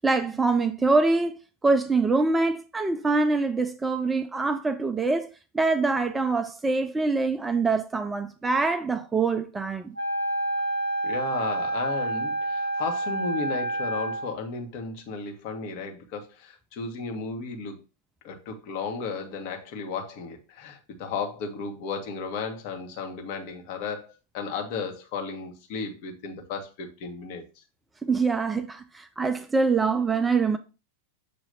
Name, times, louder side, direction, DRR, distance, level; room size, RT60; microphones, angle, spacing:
voice 1, 0.0-1.4 1.6-5.3 5.5-10.0 28.0-30.6, right 3 dB, 10° right, 0.4 m, -24 dB
Wind instrument woodwind instrument, 10.0-14.4, right 2 dB, 80° left, 1.9 m, -28 dB
voice 2, 11.0-17.8 18.2-27.4, left 5 dB, 45° left, 1.4 m, -34 dB
6.9 x 2.8 x 5.4 m
figure-of-eight pair, 90°, 0 cm